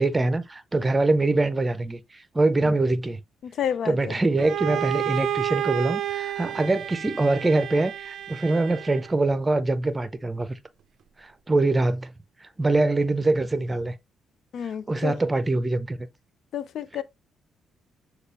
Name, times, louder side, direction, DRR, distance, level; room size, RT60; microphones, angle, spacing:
voice 1, 0.0-3.2 3.8-10.6 11.2-12.1 12.4-14.0 14.9-16.1, right 2 dB, 20° right, 0.6 m, -24 dB
voice 2, 3.4-4.2 14.5-15.2 16.5-17.0, left 9 dB, 65° left, 0.3 m, -30 dB
Bowed string instrument, 4.4-9.2, right 11 dB, 65° right, 0.4 m, -30 dB
6.3 x 2.4 x 3.4 m
cardioid pair, 90°, 0 cm